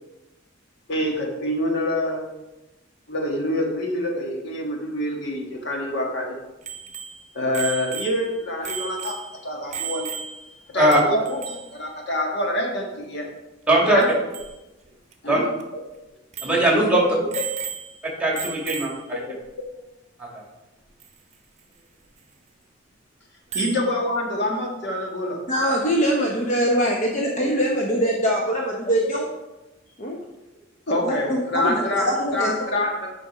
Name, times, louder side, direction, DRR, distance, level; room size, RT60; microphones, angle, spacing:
voice 1, 0.9-2.3 3.1-6.4 7.3-9.1 9.4-10.1 10.7-13.3 13.8-14.1 15.2-15.4 15.7-15.8 16.9-17.0 17.4-17.5 23.5-25.4 26.1-26.2 27.2-27.5 28.0-28.1 28.8-29.1 30.9-33.1, left 1 dB, 60° left, 0 dB, 1.6 m, -26 dB
Bicycle bell, 6.6-10.6 10.9-11.0 11.3-11.8 14.0-14.1 14.3-14.5 15.1-15.2 15.6-15.7 16.3-16.7 17.3-18.1 18.4-19.1 21.0-21.1 23.5-23.9, right 7 dB, 35° right, 0.9 m, -34 dB
voice 2, 13.7-14.0 15.3-15.4 16.4-17.0 18.2-19.2 20.2-20.4, right 1 dB, 5° right, -3 dB, 2.2 m, -20 dB
voice 3, 25.5-29.3 30.0-30.2 31.0-32.5, equal, 40° left, -1 dB, 0.9 m, -23 dB
8.4 x 5.1 x 5.0 m, 1.0 s
head